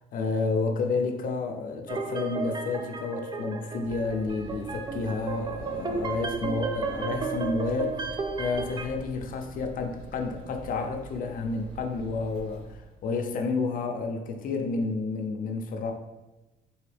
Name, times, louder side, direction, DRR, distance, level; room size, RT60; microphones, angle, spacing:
voice 1, 0.1-8.0 8.4-15.9, left 4 dB, 55° left, 4 dB, 0.6 m, -30 dB
sound 1, 1.9-8.8, right 4 dB, 25° right, 0.4 m, -33 dB
sound 2, 3.8-13.3, right 2 dB, 85° right, 1.4 m, -46 dB
3.8 x 2.7 x 3.3 m, 1.1 s
cardioid pair, 110°, 17 cm